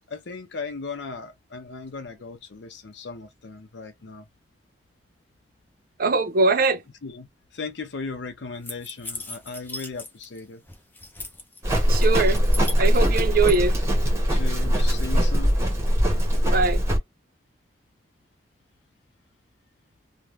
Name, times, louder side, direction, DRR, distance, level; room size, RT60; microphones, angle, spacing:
voice 1, 0.1-4.3 7.0-10.6 14.3-15.6, left 4 dB, 75° left, 0.6 m, -37 dB
voice 2, 6.0-6.8 11.9-12.4 12.8-13.8 16.4-16.8, right 3 dB, 50° right, 0.6 m, -22 dB
sound 1, 8.6-10.4 10.7-11.6 12.0-13.6, left 2 dB, 10° left, 0.5 m, -37 dB
Livestock farm animals working animals, 11.6-17.0, equal, 15° right, 0.9 m, -21 dB
2.6 x 2.2 x 3.1 m
head